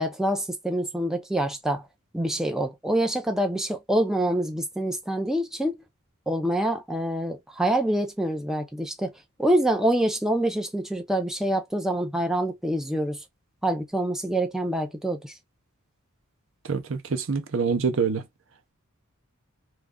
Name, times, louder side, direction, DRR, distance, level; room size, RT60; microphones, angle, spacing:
voice 1, 0.0-1.9 2.1-5.8 6.3-9.1 9.4-13.2 13.6-15.4, right 1 dB, ahead, 0.5 m, -26 dB
voice 2, 16.6-18.2, right 5 dB, 60° right, 0.6 m, -26 dB
3.1 x 2.3 x 3.6 m
head